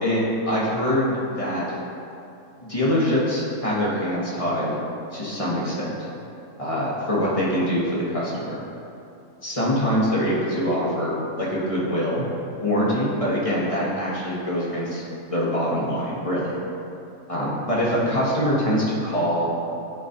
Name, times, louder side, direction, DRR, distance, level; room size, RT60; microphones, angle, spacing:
voice 1, 0.0-1.8 2.6-4.7 5.1-5.9 6.6-8.6 9.4-12.3 12.6-15.0 15.3-16.5 17.3-19.5, equal, 25° left, -7 dB, 1.3 m, -24 dB
11.5 x 5.1 x 2.8 m, 2.7 s
omnidirectional pair, 1.4 m